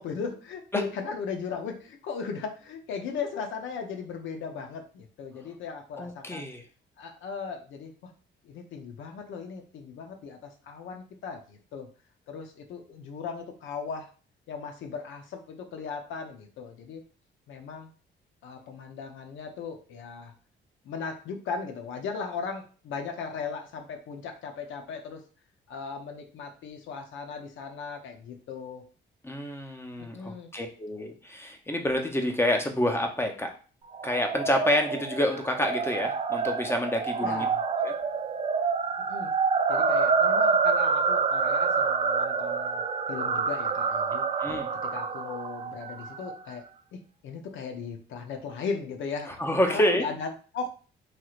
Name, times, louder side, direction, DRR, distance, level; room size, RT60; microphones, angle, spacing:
voice 1, 0.0-6.5 7.0-8.1 8.4-11.9 12.3-14.1 14.5-17.0 17.5-17.9 18.4-20.3 20.8-25.2 25.7-28.8 30.0-30.5 37.2-37.6 39.0-39.3 39.7-44.2 44.9-46.7 46.9-49.4 49.7-50.7, left 5 dB, 80° left, 4 dB, 0.6 m, -37 dB
voice 2, 6.0-6.6 29.2-33.5 34.0-37.5 37.8-37.9 44.4-44.7 49.4-50.0, left 1 dB, 10° left, 4 dB, 0.6 m, -28 dB
sound 1, 33.9-46.4, right 5 dB, 30° right, 0.3 m, -27 dB
3.2 x 2.9 x 2.4 m, 0.38 s
cardioid pair, 90°, 20 cm